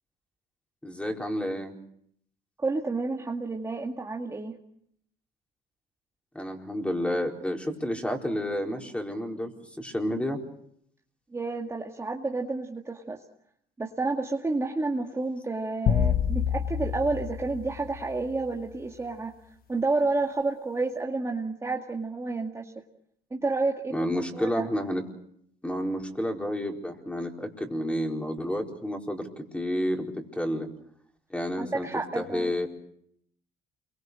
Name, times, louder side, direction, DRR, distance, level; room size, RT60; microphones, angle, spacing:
voice 1, 0.8-1.7 6.3-9.5 9.8-10.4 23.9-25.0 25.6-30.7 31.3-31.9 32.1-32.7, equal, 5° left, 2 dB, 4.5 m, -30 dB
voice 2, 2.6-4.6 11.3-13.2 13.8-19.3 19.7-22.7 23.3-24.7 31.6-32.5, right 3 dB, 15° right, 1 dB, 2.1 m, -30 dB
sound 1, 15.9-18.4, left 8 dB, 60° left, 1.2 m, -27 dB
29.0 x 23.5 x 6.3 m, 0.70 s
cardioid pair, 110°, 17 cm